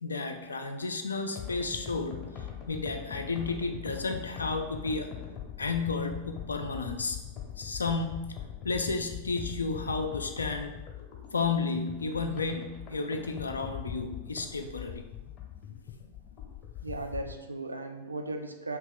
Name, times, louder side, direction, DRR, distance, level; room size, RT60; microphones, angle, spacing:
voice 1, 0.0-2.3 2.7-5.1 5.6-7.2 7.6-8.3 8.6-10.7 11.3-15.0, left 4 dB, 75° left, 6 dB, 0.3 m, -32 dB
sound 1, 1.4-17.4, left 9 dB, 35° left, 0.7 m, -42 dB
voice 2, 16.8-18.8, right 2 dB, 80° right, 5 dB, 0.3 m, -36 dB
2.9 x 2.8 x 3.7 m, 1.1 s
figure-of-eight pair, 90°, 0 cm